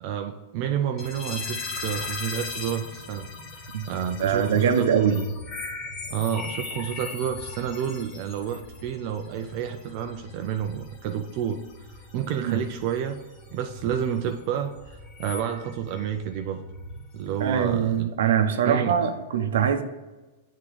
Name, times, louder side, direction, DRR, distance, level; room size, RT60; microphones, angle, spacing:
voice 1, 0.0-3.3 3.9-4.9 6.1-11.6 12.1-13.2 13.5-16.6 17.1-18.1 18.7-19.0, right 9 dB, 40° right, 0.5 m, -30 dB
sound 1, 1.0-18.0, left 3 dB, 25° left, 1.2 m, -39 dB
voice 2, 4.2-5.3 12.4-12.6 17.4-19.8, right 8 dB, 80° right, 0.8 m, -23 dB
8.6 x 3.7 x 4.9 m
supercardioid pair, 165°, 0 cm